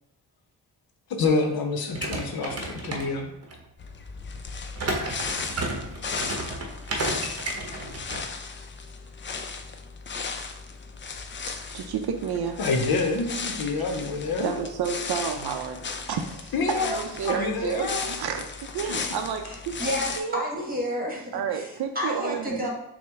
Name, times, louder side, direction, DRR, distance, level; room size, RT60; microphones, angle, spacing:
voice 1, 1.1-3.3 12.6-14.5 16.5-18.1 18.9-19.0, left 3 dB, 60° left, 4 dB, 0.7 m, -27 dB
sound 1, 1.9-3.6 4.8-8.2, right 2 dB, 35° right, 0.9 m, -32 dB
sound 2, 3.8-20.2, left 5 dB, 30° left, 0.4 m, -36 dB
voice 2, 11.7-12.6 14.4-18.5 18.7-19.8 20.2-20.4 21.3-22.6, right 7 dB, 65° right, 6 dB, 0.5 m, -30 dB
voice 3, 19.4-22.7, equal, 20° right, -2 dB, 1.4 m, -31 dB
5.7 x 2.1 x 3.4 m, 0.84 s
cardioid pair, 75°, 40 cm